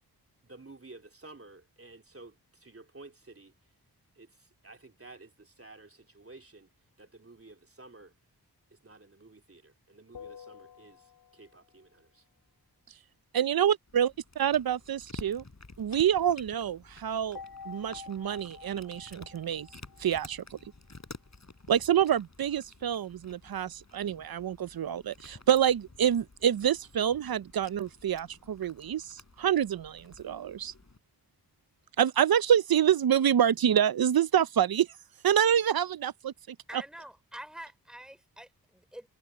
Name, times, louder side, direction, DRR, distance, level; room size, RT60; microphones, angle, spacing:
voice 1, 0.4-3.7 4.1-6.7 7.0-8.1 8.7-12.2, right 2 dB, 35° right, 3.3 m, -52 dB
sound 1, 10.1-11.7 17.3-20.7, left 6 dB, 75° left, 1.2 m, -49 dB
voice 2, 13.3-14.1 14.4-15.4 15.8-17.4 17.7-19.7 20.0-20.6 21.7-30.7 32.0-34.9 35.2-36.8, right 9 dB, 65° right, 0.6 m, -27 dB
Cat, 13.9-31.0, left 3 dB, 45° left, 6.6 m, -52 dB
voice 3, 36.7-39.1, right 1 dB, ahead, 3.7 m, -46 dB
cardioid pair, 45°, 39 cm